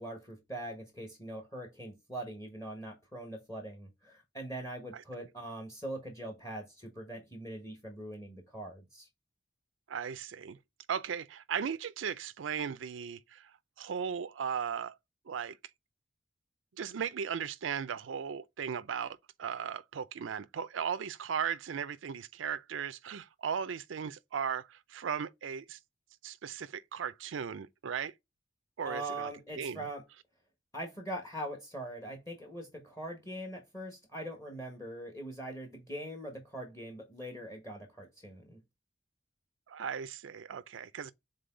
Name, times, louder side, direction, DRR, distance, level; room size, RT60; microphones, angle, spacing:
voice 1, 0.0-9.1 28.8-30.0 30.7-38.6, right 1 dB, 15° left, 1.5 m, -42 dB
voice 2, 9.9-10.6 10.9-13.5 13.8-15.0 15.3-15.6 16.8-25.8 26.2-28.1 28.8-29.3 29.6-29.8 39.7-41.1, right 7 dB, 80° right, 0.4 m, -37 dB
6.9 x 4.0 x 3.7 m
head